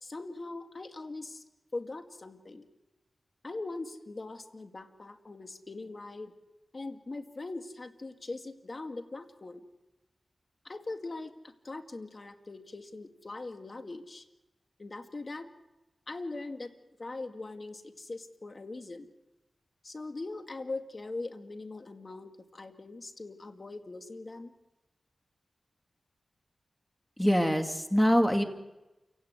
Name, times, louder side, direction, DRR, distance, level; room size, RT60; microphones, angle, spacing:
voice 1, 0.0-1.4 1.7-2.6 3.4-6.3 6.7-9.6 10.6-14.2 14.8-15.5 16.1-16.7 17.0-19.1 19.8-24.5, left 2 dB, 45° left, 6 dB, 2.0 m, -41 dB
voice 2, 27.2-28.4, equal, 5° left, 5 dB, 2.6 m, -24 dB
28.5 x 17.0 x 8.3 m, 1.0 s
wide cardioid pair, 60°, 0 cm